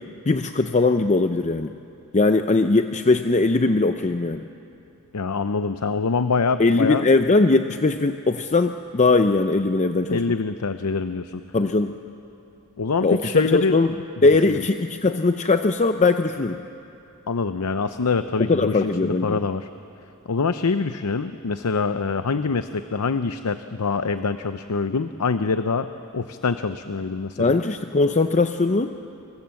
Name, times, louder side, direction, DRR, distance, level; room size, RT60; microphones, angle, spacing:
voice 1, 0.0-1.7 2.1-4.4 6.6-10.2 11.5-12.0 13.0-13.9 14.2-16.6 18.4-19.4 27.4-29.0, left 3 dB, 30° left, 8 dB, 0.6 m, -20 dB
voice 2, 5.1-7.1 10.1-11.4 12.8-13.8 14.5-14.6 17.3-19.7 20.3-27.6, left 4 dB, 85° left, 10 dB, 0.7 m, -25 dB
26.0 x 25.5 x 7.7 m, 2.7 s
head